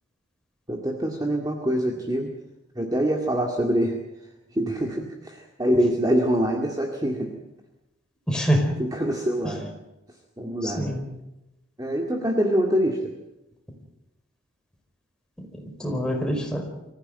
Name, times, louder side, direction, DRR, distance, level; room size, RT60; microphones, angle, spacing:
voice 1, 0.7-2.3 2.8-4.0 4.6-7.3 8.8-9.7 10.4-10.9 11.8-13.1, equal, 20° right, 1 dB, 2.1 m, -25 dB
voice 2, 8.3-8.7 10.6-11.0 15.5-16.6, equal, 5° left, 1 dB, 4.7 m, -25 dB
24.5 x 15.0 x 9.1 m, 0.95 s
head